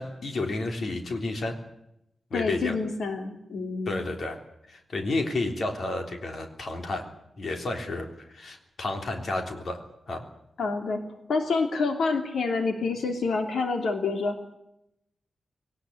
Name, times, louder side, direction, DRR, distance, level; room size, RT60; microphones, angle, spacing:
voice 1, 0.0-1.6 2.3-2.7 3.9-4.4 4.7-7.1 7.4-10.3, left 2 dB, 50° left, 5 dB, 3.4 m, -31 dB
voice 2, 2.3-4.0 10.6-11.0 11.3-14.4, left 4 dB, 75° left, 5 dB, 3.0 m, -27 dB
21.0 x 18.5 x 9.8 m, 0.81 s
wide cardioid pair, 180°, 0 cm